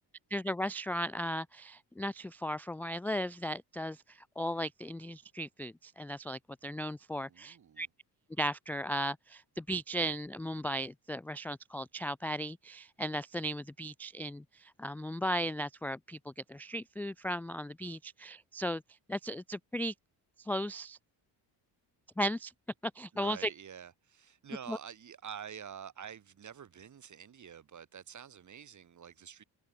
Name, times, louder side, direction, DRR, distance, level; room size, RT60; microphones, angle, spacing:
voice 1, 0.3-7.9 8.3-19.9 20.4-21.0 22.2-22.5 22.8-23.5 24.7-24.8, equal, 5° left, 0.3 m, -36 dB
voice 2, 7.3-7.9 23.1-29.4, right 8 dB, 45° right, 7.2 m, -48 dB
open air
cardioid pair, 135°, 40 cm